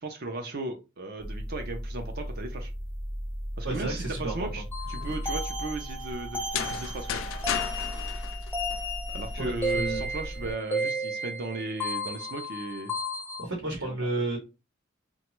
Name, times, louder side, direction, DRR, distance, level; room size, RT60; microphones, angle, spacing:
voice 1, 0.0-2.7 3.6-4.6 4.9-7.2 9.1-12.9 13.7-13.9, right 2 dB, 50° right, 5 dB, 0.5 m, -36 dB
sound 1, 1.2-10.5, equal, 25° right, 0.9 m, -37 dB
voice 2, 3.6-4.6 9.4-10.1 13.4-14.4, right 2 dB, 70° right, -1 dB, 1.0 m, -32 dB
sound 2, 4.7-13.4, equal, 10° left, 0.4 m, -34 dB
sound 3, 6.4-9.2, left 9 dB, 80° left, 0.3 m, -34 dB
2.9 x 2.2 x 3.0 m, 0.27 s
head